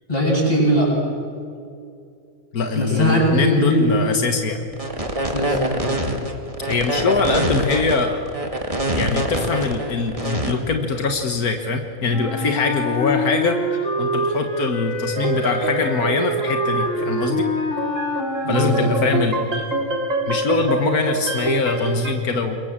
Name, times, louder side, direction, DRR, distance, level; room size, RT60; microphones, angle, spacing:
voice 1, 0.1-0.9 2.7-3.9 5.3-5.9 18.4-19.0, right 1 dB, 25° left, -3 dB, 8.3 m, -20 dB
voice 2, 2.5-4.7 6.7-8.2 8.9-13.6 14.0-17.5 18.5-19.6 20.3-22.6, left 4 dB, 85° left, 4 dB, 2.0 m, -22 dB
sound 1, 4.7-10.5, right 1 dB, 25° right, 2.3 m, -24 dB
Wind instrument woodwind instrument, 12.1-19.4, equal, 55° left, 2.5 m, -26 dB
sound 2, 15.2-22.1, right 3 dB, 60° right, 2.5 m, -27 dB
27.5 x 22.5 x 7.5 m, 2.4 s
omnidirectional pair, 1.5 m